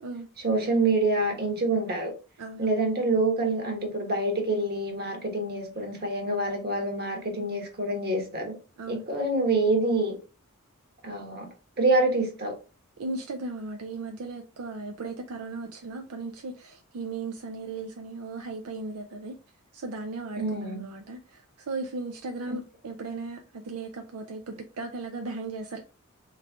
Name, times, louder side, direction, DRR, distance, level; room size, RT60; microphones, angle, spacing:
voice 1, 0.4-2.1 2.6-8.5 8.9-10.2 11.0-11.5 11.8-12.5 20.4-20.9 22.5-22.6, right 2 dB, 45° right, 1.4 m, -26 dB
voice 2, 2.4-2.8 8.8-9.0 13.0-19.4 19.7-25.8, right 3 dB, 75° right, 0.5 m, -36 dB
3.5 x 3.2 x 3.6 m
head